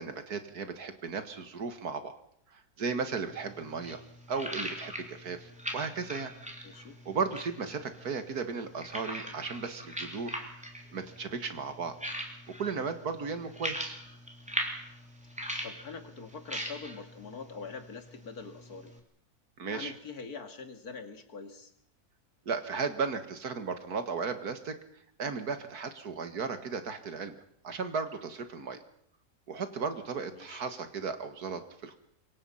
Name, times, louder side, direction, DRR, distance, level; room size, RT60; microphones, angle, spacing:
voice 1, 0.0-2.2 2.5-4.0 4.3-6.3 7.1-10.4 10.9-12.0 12.6-14.0 19.6-19.9 22.5-24.8 25.2-27.4 27.6-28.8 29.5-32.0, right 5 dB, 85° right, 9 dB, 2.3 m, -35 dB
sound 1, 3.3-19.0, equal, 5° right, 3.1 m, -41 dB
voice 2, 6.6-7.0 15.6-19.0 19.7-21.7 30.3-30.6, left 5 dB, 80° left, 6 dB, 2.8 m, -44 dB
25.5 x 22.5 x 5.7 m, 0.71 s
omnidirectional pair, 1.6 m